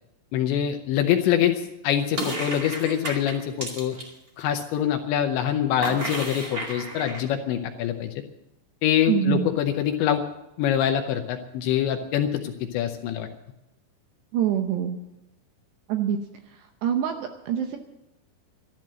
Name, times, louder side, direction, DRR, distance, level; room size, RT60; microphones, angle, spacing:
voice 1, 0.3-4.0 4.4-8.1 8.8-10.2 10.6-13.3, left 10 dB, 80° left, 5 dB, 2.7 m, -24 dB
sound 1, 2.1-4.1 5.8-7.2, right 1 dB, 55° right, 1.0 m, -32 dB
voice 2, 9.1-9.5 14.3-15.0 15.9-16.2 16.8-17.8, right 9 dB, 75° right, 5 dB, 2.6 m, -25 dB
13.5 x 12.0 x 7.5 m, 0.93 s
omnidirectional pair, 5.9 m